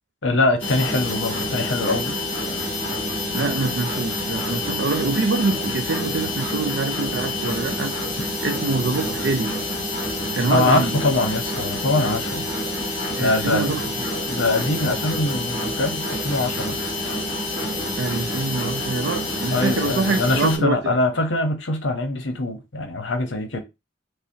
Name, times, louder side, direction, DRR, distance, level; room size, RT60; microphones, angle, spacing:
voice 1, 0.2-2.1 10.5-12.5 13.2-13.7 14.3-16.7 19.5-23.6, left 2 dB, 75° left, 0.8 m, -23 dB
sound 1, 0.6-20.6, left 1 dB, 30° left, 1.6 m, -27 dB
voice 2, 3.3-7.9 8.4-9.5 10.3-11.0 13.2-14.1 18.0-21.0, right 3 dB, 65° right, 0.4 m, -25 dB
5.4 x 2.0 x 2.7 m
head